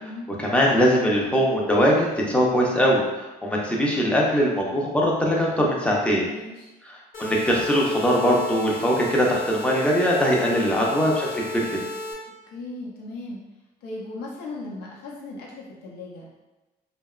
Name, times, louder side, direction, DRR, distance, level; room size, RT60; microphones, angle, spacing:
voice 1, 0.4-6.3 7.2-11.8, equal, 5° left, -3 dB, 0.5 m, -21 dB
voice 2, 6.0-6.7 12.4-13.4 13.8-16.4, left 2 dB, 80° left, -3 dB, 0.7 m, -37 dB
sound 1, 7.1-12.1, left 1 dB, 55° left, 1.1 m, -34 dB
2.7 x 2.1 x 2.3 m, 1.1 s
cardioid pair, 110°, 17 cm